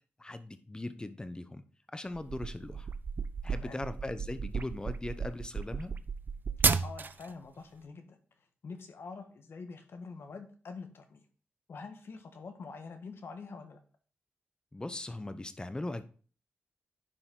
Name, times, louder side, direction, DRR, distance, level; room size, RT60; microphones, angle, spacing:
voice 1, 0.2-1.6 1.9-2.9 3.4-5.9 14.7-16.0, left 2 dB, 20° left, 11 dB, 0.8 m, -39 dB
sound 1, 2.1-7.3, right 5 dB, 50° right, 0.5 m, -33 dB
voice 2, 6.8-8.2 8.6-11.2 11.7-13.8, left 4 dB, 70° left, 6 dB, 1.3 m, -46 dB
10.0 x 4.8 x 3.8 m, 0.41 s
cardioid pair, 75°, 4 cm